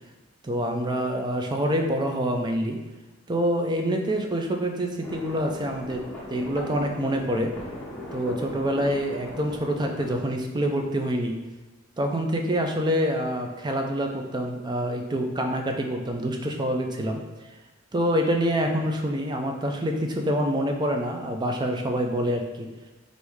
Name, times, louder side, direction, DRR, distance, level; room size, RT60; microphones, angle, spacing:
voice 1, 0.4-2.8 3.3-7.5 8.1-11.4 12.0-17.2 17.9-22.7, equal, 20° right, 3 dB, 0.4 m, -26 dB
sound 1, 5.0-10.2, left 1 dB, 10° left, 1.1 m, -39 dB
4.6 x 2.6 x 3.5 m, 1.2 s
head